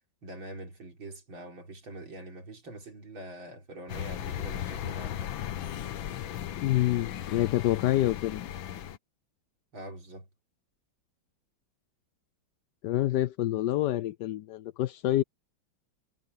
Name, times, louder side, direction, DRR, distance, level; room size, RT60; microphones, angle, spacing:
voice 1, 0.2-5.4 9.7-10.3, right 1 dB, 80° right, 5.1 m, -44 dB
sound 1, 3.9-9.0, left 11 dB, 90° left, 1.8 m, -36 dB
voice 2, 6.6-8.5 12.8-15.2, left 14 dB, 75° left, 1.1 m, -27 dB
omnidirectional pair, 2.1 m